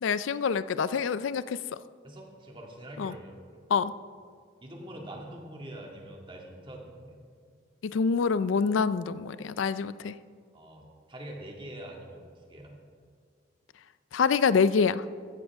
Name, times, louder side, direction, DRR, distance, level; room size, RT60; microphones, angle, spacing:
voice 1, 0.0-1.8 3.0-3.1 3.7-3.9 7.8-10.1 14.1-15.1, left 5 dB, 90° left, 16 dB, 0.4 m, -26 dB
voice 2, 2.0-3.7 4.6-7.2 10.5-12.8, right 1 dB, 25° right, 0 dB, 2.0 m, -44 dB
15.5 x 14.5 x 3.5 m, 2.1 s
head